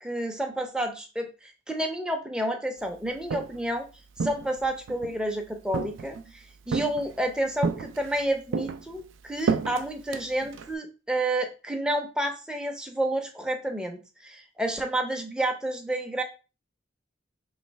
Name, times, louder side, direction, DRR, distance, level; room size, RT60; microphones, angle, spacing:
voice 1, 0.0-3.9 4.2-6.2 6.7-16.2, right 1 dB, 5° right, 3 dB, 0.5 m, -30 dB
Walk footsteps, 3.1-3.7 4.2-5.2 5.7-6.3 6.7-7.2 7.6-8.2 8.5-10.7, right 5 dB, 80° right, 0.4 m, -31 dB
3.1 x 3.1 x 4.5 m, 0.32 s
head